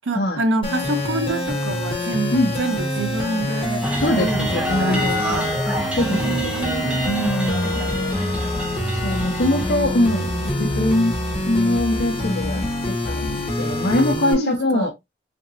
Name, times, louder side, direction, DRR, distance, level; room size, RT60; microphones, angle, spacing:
voice 1, 0.0-3.8 4.1-5.5 6.1-7.3 10.2-10.9 14.0-14.9, right 3 dB, 80° right, 0.7 m, -27 dB
sound 1, 0.6-14.3, left 1 dB, 30° left, 1.2 m, -25 dB
sound 2, 3.8-9.8, left 1 dB, 5° right, 0.6 m, -28 dB
voice 2, 4.0-5.4 6.0-7.8 9.0-11.1 11.5-14.9, left 1 dB, 55° left, 0.7 m, -22 dB
3.5 x 2.9 x 2.6 m
head